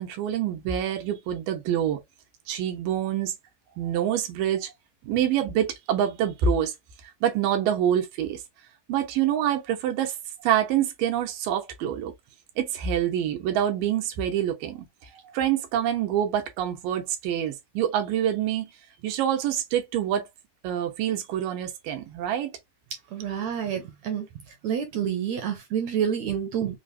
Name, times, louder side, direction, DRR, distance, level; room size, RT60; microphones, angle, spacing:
voice 1, 0.0-2.0 2.5-3.4 3.8-4.7 5.1-6.7 7.2-8.4 8.9-10.1 10.4-12.1 12.6-14.9 15.3-18.7 19.0-20.3 20.6-22.5, right 10 dB, 90° right, 2.5 m, -26 dB
voice 2, 23.1-24.3 24.6-26.8, right 8 dB, 75° right, 1.7 m, -28 dB
5.4 x 2.0 x 2.6 m
omnidirectional pair, 3.8 m